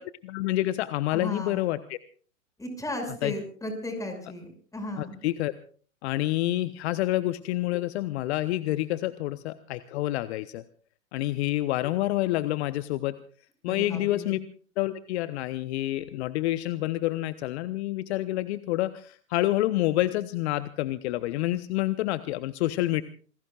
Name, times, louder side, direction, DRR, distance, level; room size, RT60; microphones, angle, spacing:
voice 1, 0.2-2.0 3.2-3.3 5.0-5.5 6.0-10.6 11.1-13.1 13.6-14.4 14.8-23.0, left 16 dB, 50° left, 14 dB, 0.9 m, -28 dB
voice 2, 1.1-1.6 2.6-5.2 13.7-14.3, left 1 dB, 10° left, 5 dB, 6.1 m, -35 dB
27.5 x 20.0 x 2.4 m, 0.43 s
hypercardioid pair, 110°, 41 cm